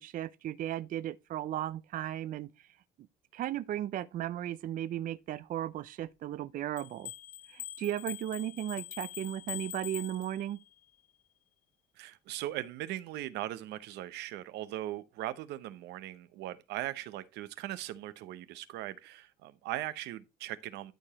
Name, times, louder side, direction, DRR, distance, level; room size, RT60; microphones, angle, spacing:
voice 1, 0.0-2.7 3.3-7.1 7.5-10.6, right 12 dB, 55° right, 0.5 m, -36 dB
sound 1, 6.8-10.7, left 12 dB, 55° left, 0.4 m, -44 dB
voice 2, 12.0-20.9, right 14 dB, 85° right, 0.8 m, -39 dB
12.0 x 4.9 x 4.1 m
cardioid pair, 110°, 17 cm